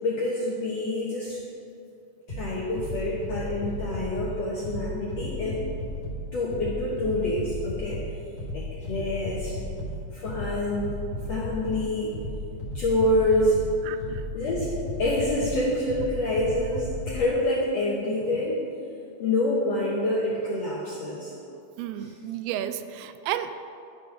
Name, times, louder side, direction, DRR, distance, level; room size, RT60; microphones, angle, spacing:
voice 1, 0.0-1.4 2.3-5.6 6.3-8.0 8.5-9.5 10.1-11.0 11.3-12.1 12.7-13.6 14.3-14.7 15.0-18.6 19.2-21.3 22.0-22.1, left 1 dB, 70° left, -5 dB, 1.6 m, -27 dB
sound 1, 2.3-17.3, left 1 dB, 30° left, 2.3 m, -35 dB
voice 2, 13.9-14.2 21.8-23.6, right 11 dB, 85° right, 11 dB, 2.5 m, -32 dB
11.5 x 6.1 x 5.8 m, 2.6 s
omnidirectional pair, 4.5 m